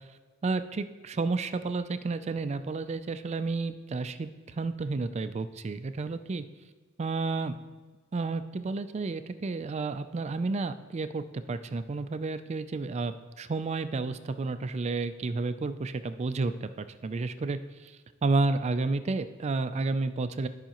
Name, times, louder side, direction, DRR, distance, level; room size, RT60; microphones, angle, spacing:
voice 1, 0.4-4.3 4.6-6.4 7.0-7.5 8.1-17.9 18.2-20.5, right 3 dB, 30° right, 11 dB, 0.3 m, -31 dB
12.5 x 5.7 x 3.0 m, 1.4 s
head